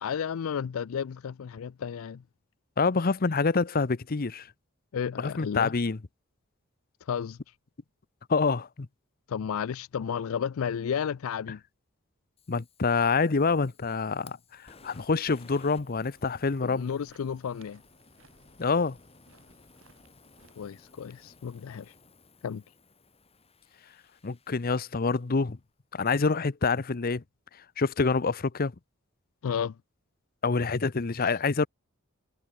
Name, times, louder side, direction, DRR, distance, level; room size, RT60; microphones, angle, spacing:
voice 1, 0.0-2.2 4.9-5.8 7.0-7.4 9.3-11.6 16.6-17.8 20.6-21.9 22.4-22.6 29.4-29.8, left 7 dB, 85° left, 0.4 m, -32 dB
voice 2, 2.8-4.5 5.2-6.0 8.3-8.7 12.5-14.4 14.8-16.9 18.6-19.0 24.2-25.6 25.9-27.2 27.8-28.7 30.4-31.7, left 4 dB, 45° left, 0.7 m, -26 dB
Fire, 12.4-25.5, left 3 dB, 30° left, 4.0 m, -58 dB
sound 1, 14.5-20.7, right 3 dB, 75° right, 7.9 m, -63 dB
head